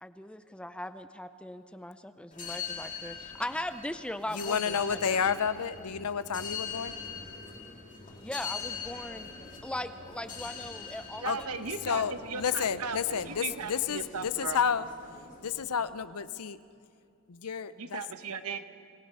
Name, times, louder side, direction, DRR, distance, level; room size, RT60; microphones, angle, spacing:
voice 1, 0.0-5.2 8.2-9.3 9.6-11.5, left 1 dB, 5° left, 11 dB, 0.5 m, -39 dB
sound 1, 2.3-15.8, left 6 dB, 35° left, 2.6 m, -43 dB
voice 2, 4.3-7.0 11.2-11.4 11.8-14.9 15.4-16.6 17.3-18.0, left 7 dB, 90° left, 14 dB, 0.7 m, -31 dB
voice 3, 11.2-14.6 17.8-18.6, right 5 dB, 75° right, 9 dB, 1.1 m, -37 dB
25.5 x 18.0 x 5.6 m, 2.4 s
head